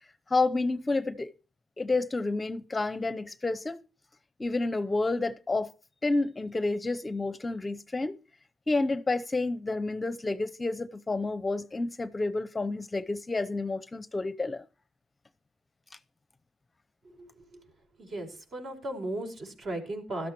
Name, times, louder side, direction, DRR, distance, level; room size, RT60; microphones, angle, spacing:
voice 1, 0.3-1.3 1.8-3.8 4.4-5.7 6.0-8.2 8.7-14.6, left 3 dB, 20° left, 0.7 m, -29 dB
voice 2, 17.0-17.7 18.0-20.3, right 1 dB, 55° right, 5.6 m, -37 dB
16.5 x 13.0 x 3.0 m
cardioid pair, 90°, 0 cm